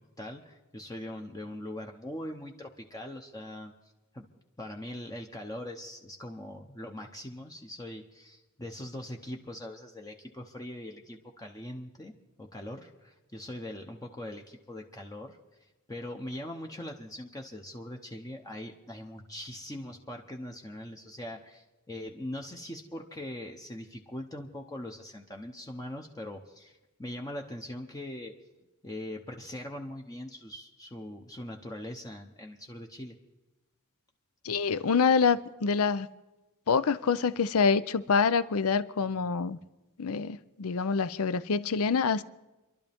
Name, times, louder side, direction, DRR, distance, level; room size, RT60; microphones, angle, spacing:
voice 1, 0.0-3.7 4.1-4.3 4.6-15.4 15.9-28.3 28.8-33.2, left 1 dB, 15° left, 0.9 m, -41 dB
voice 2, 34.4-36.1 36.7-39.6 40.0-42.2, left 5 dB, 70° left, 0.6 m, -26 dB
29.5 x 12.0 x 3.5 m
head